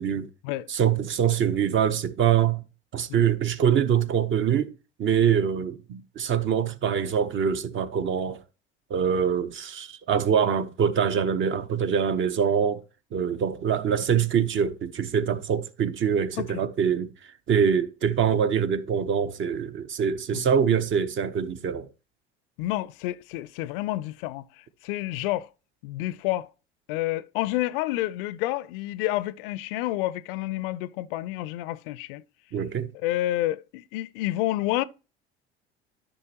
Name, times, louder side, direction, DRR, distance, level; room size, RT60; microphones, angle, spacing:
voice 1, 0.7-2.6 2.9-4.7 5.0-8.4 8.9-12.8 13.1-21.9 32.5-32.9, right 7 dB, 40° right, 1.0 m, -24 dB
voice 2, 22.6-25.5 25.8-26.5 26.9-32.2 33.0-34.8, left 16 dB, 60° left, 0.5 m, -29 dB
12.5 x 5.4 x 2.9 m
figure-of-eight pair, 65°, 31 cm